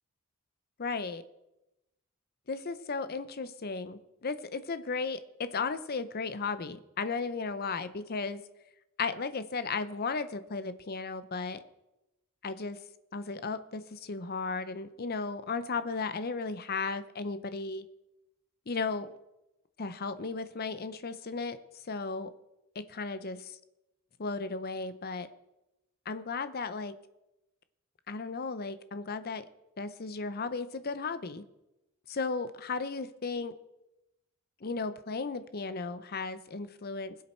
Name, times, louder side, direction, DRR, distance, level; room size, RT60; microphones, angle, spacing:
voice 1, 0.8-1.2 2.5-8.4 9.0-11.6 12.4-12.8 13.1-17.8 18.7-19.1 19.8-21.6 21.9-22.3 22.8-23.4 24.2-25.3 26.1-26.9 28.1-29.4 29.8-31.4 32.1-33.5 34.6-37.2, left 4 dB, 45° left, 12 dB, 0.7 m, -35 dB
20.5 x 7.5 x 4.4 m, 0.94 s
head